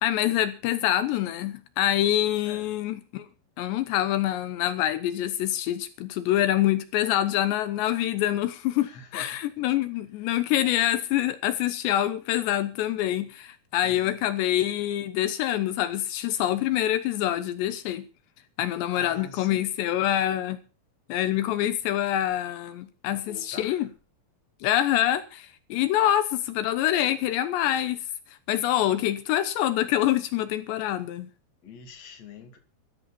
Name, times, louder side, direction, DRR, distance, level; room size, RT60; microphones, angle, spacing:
voice 1, 0.0-3.3 3.6-18.1 18.6-20.6 21.1-23.9 24.6-31.3, left 12 dB, 80° left, 3.2 m, -26 dB
voice 2, 8.8-9.4 10.2-10.4 13.8-14.2 18.9-19.7 23.1-23.9 31.6-32.6, left 5 dB, 40° left, 3.5 m, -44 dB
19.5 x 13.5 x 4.3 m
omnidirectional pair, 5.0 m